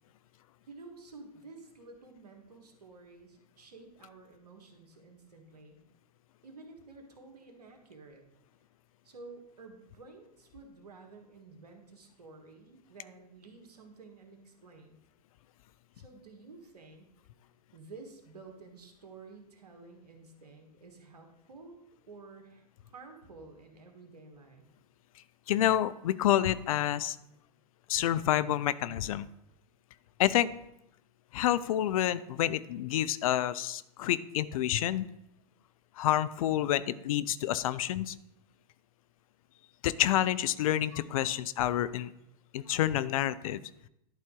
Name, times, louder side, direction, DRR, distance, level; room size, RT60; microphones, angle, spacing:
voice 1, 0.7-5.8 6.4-8.2 9.0-15.0 15.9-17.1 17.7-21.8 22.1-24.6, right 3 dB, 80° right, 4 dB, 1.6 m, -51 dB
voice 2, 25.5-27.2 27.9-29.3 30.2-30.5 31.3-35.1 36.0-38.2 39.8-42.1 42.5-43.6, left 12 dB, 60° left, 16 dB, 0.5 m, -28 dB
11.0 x 4.0 x 3.8 m, 0.82 s
hypercardioid pair, 105°, 20 cm